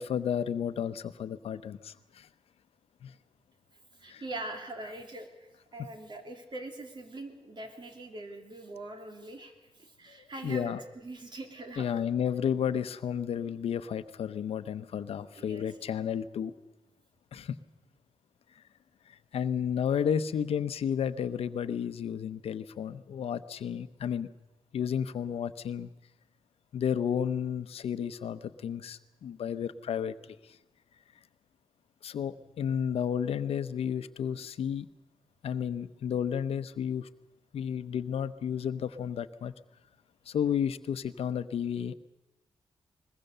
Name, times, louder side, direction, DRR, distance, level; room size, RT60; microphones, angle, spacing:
voice 1, 0.0-1.9 3.0-3.1 4.1-4.2 10.4-10.8 11.8-16.5 17.3-17.6 19.3-24.3 24.7-25.9 26.7-30.1 32.0-34.9 35.4-37.1 37.5-39.5 40.3-42.0, left 8 dB, 85° left, 13 dB, 0.8 m, -32 dB
voice 2, 4.0-5.3 5.7-9.5 9.8-11.9 15.3-15.8, right 2 dB, 50° right, 4 dB, 3.1 m, -42 dB
21.5 x 21.0 x 6.7 m, 1.0 s
cardioid pair, 95°, 10 cm